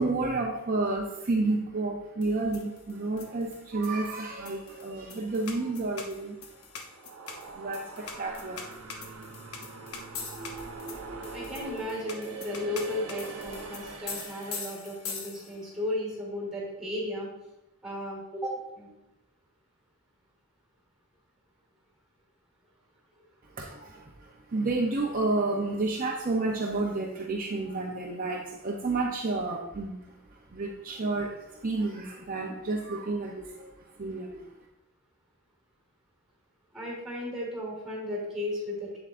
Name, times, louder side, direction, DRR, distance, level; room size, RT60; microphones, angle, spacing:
voice 1, 0.0-6.6 7.5-8.8 23.5-34.5, right 3 dB, 40° right, -1 dB, 0.6 m, -31 dB
sound 1, 2.2-15.7, left 5 dB, 85° left, 0.8 m, -43 dB
sound 2, 6.7-15.0, right 3 dB, 80° right, 0.7 m, -42 dB
voice 2, 11.3-17.3 17.8-18.9 36.7-39.0, left 1 dB, ahead, -3 dB, 2.8 m, -35 dB
7.9 x 7.5 x 2.5 m, 0.92 s
head